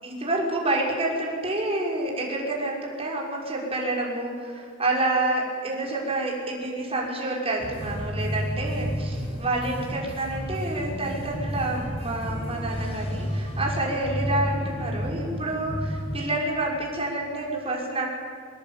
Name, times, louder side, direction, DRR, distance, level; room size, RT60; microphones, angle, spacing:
voice 1, 0.0-18.1, right 2 dB, 30° right, -2 dB, 6.1 m, -28 dB
sound 1, 7.6-16.2, equal, 30° left, 6.3 m, -31 dB
25.5 x 20.0 x 9.0 m, 2.2 s
head